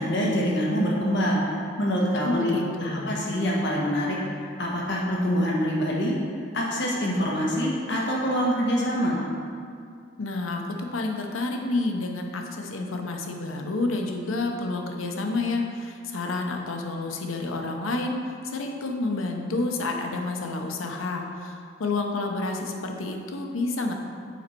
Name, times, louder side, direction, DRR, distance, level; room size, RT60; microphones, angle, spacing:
voice 1, 0.0-2.6 2.8-6.2 6.5-9.2, equal, 60° left, -3 dB, 1.2 m, -25 dB
voice 2, 2.2-3.2 10.2-18.2 18.4-23.9, left 2 dB, 85° left, 3 dB, 0.8 m, -29 dB
7.1 x 5.2 x 4.4 m, 2.3 s
head